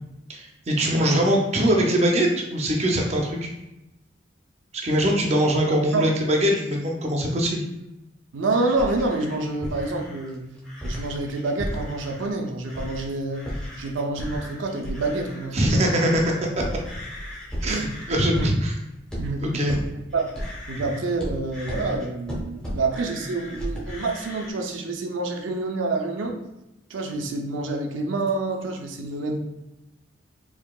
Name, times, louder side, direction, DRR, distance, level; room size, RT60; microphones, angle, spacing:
voice 1, 0.3-3.5 4.8-7.6 15.5-16.6 17.6-18.7 19.4-19.8, equal, 35° right, 0 dB, 0.5 m, -22 dB
voice 2, 8.3-10.4 10.8-16.0 17.6-17.9 18.4-18.5 19.2-19.7 20.1-20.3 20.7-26.4 26.9-29.4, right 3 dB, 90° right, 3 dB, 0.5 m, -27 dB
sound 1, 8.4-12.3 12.6-13.1 13.3-24.5, equal, 5° left, 0.8 m, -35 dB
4.7 x 2.7 x 2.3 m, 0.91 s
head